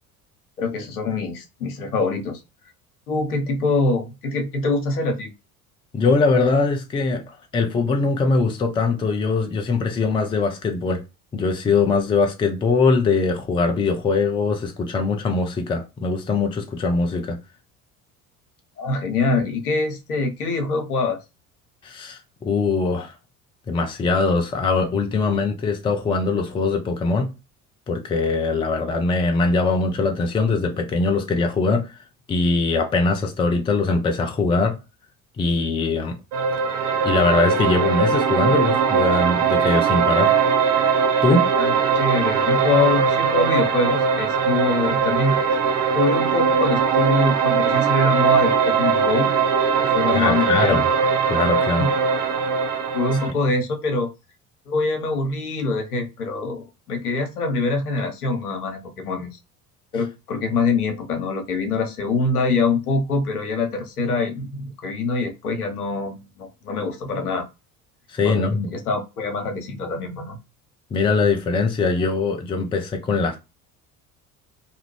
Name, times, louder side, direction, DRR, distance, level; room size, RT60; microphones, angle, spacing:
voice 1, 0.6-2.4 3.1-5.3 18.8-21.2 41.6-45.4 45.9-49.3 49.8-50.8 51.8-51.9 52.9-54.1 54.7-59.3 59.9-67.4 68.2-70.4, left 3 dB, 80° left, 0.7 m, -24 dB
voice 2, 5.9-7.2 7.5-11.0 11.3-17.4 21.8-23.1 23.7-27.3 27.9-32.0 32.3-34.8 35.4-36.2 37.0-40.3 41.2-41.5 50.1-50.9 51.3-51.9 68.1-68.7 70.9-73.4, left 4 dB, 15° left, 0.4 m, -21 dB
sound 1, 36.3-53.3, right 6 dB, 55° right, 0.6 m, -20 dB
2.4 x 2.1 x 3.0 m
figure-of-eight pair, 60°, 44 cm